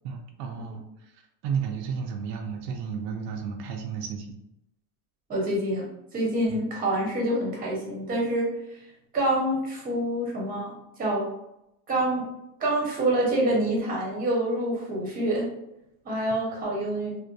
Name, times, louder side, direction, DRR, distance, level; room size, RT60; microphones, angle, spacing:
voice 1, 0.0-4.4 6.5-6.6 16.5-16.6, right 6 dB, 85° right, 3 dB, 0.6 m, -33 dB
voice 2, 5.3-5.9 6.1-8.5 9.1-10.7 11.0-11.3 11.9-12.3 12.6-15.5 16.0-17.2, right 1 dB, 20° right, -3 dB, 0.8 m, -26 dB
2.6 x 2.2 x 2.3 m, 0.84 s
supercardioid pair, 140°, 48 cm